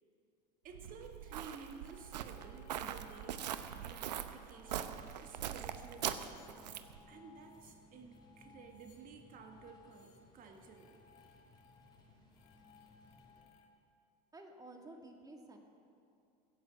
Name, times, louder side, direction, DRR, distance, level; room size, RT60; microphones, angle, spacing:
voice 1, 0.6-6.5 7.1-11.0, right 5 dB, 45° right, 4 dB, 1.7 m, -54 dB
Walk footsteps, 0.7-7.0, right 10 dB, 85° right, 0.7 m, -42 dB
sound 1, 1.2-13.7, left 6 dB, 60° left, 1.7 m, -65 dB
sound 2, 4.7-13.4, left 1 dB, 20° left, 4.2 m, -63 dB
voice 2, 14.3-15.6, right 2 dB, 15° right, 2 dB, 2.1 m, -52 dB
15.5 x 8.1 x 7.5 m, 2.5 s
hypercardioid pair, 90°, 21 cm